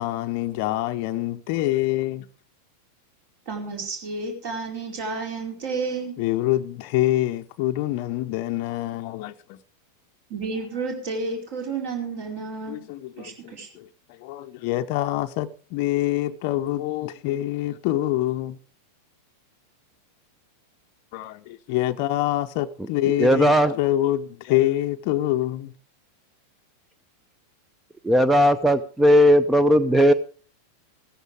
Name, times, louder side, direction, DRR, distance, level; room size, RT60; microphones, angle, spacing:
voice 1, 0.0-2.3 6.2-9.6 12.7-18.6 21.1-25.7, left 15 dB, 45° left, 0.6 m, -26 dB
voice 2, 3.5-6.2 10.3-12.8 13.2-13.7, right 4 dB, 50° right, 4.7 m, -31 dB
voice 3, 23.2-23.7 28.0-30.1, equal, 5° right, 0.6 m, -17 dB
16.0 x 14.5 x 3.4 m
figure-of-eight pair, 90°, 0 cm